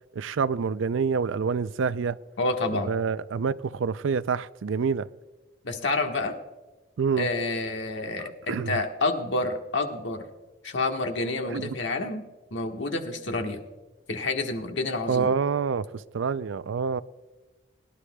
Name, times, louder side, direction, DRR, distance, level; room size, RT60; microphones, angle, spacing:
voice 1, 0.1-2.2 2.7-5.1 7.0-7.3 8.2-8.8 11.5-11.7 15.1-17.0, right 5 dB, 85° right, 0.4 m, -27 dB
voice 2, 2.4-2.9 5.6-6.3 7.2-10.2 10.6-12.2 12.5-13.6 14.1-15.3, left 2 dB, 75° left, 1.4 m, -28 dB
22.0 x 11.5 x 2.3 m
head